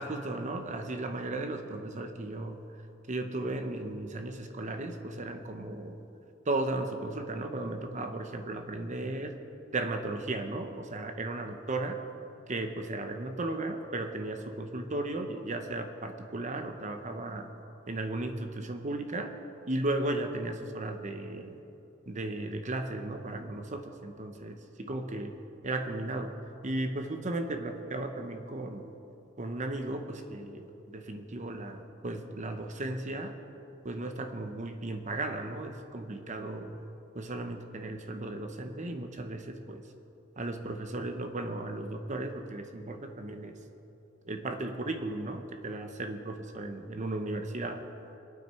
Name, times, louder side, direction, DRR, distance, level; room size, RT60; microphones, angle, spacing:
voice 1, 0.0-2.7 3.1-6.0 6.5-9.4 9.7-12.0 12.5-17.5 17.9-19.4 19.7-21.6 22.1-25.3 25.6-26.4 26.6-28.9 29.4-33.4 33.8-36.8 37.1-39.9 40.4-43.6 44.3-47.8, right 2 dB, 40° right, 6 dB, 0.9 m, -35 dB
23.0 x 9.2 x 4.5 m, 2.9 s
head